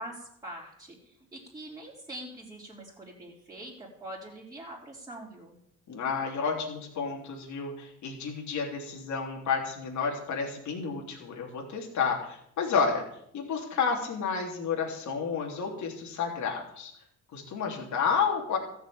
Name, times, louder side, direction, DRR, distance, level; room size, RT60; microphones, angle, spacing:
voice 1, 0.0-5.6, right 1 dB, 10° right, -5 dB, 4.2 m, -43 dB
voice 2, 5.9-13.0 13.3-16.9 17.3-18.6, left 5 dB, 70° left, 0 dB, 3.4 m, -31 dB
14.0 x 7.0 x 8.8 m, 0.73 s
cardioid pair, 90°, 30 cm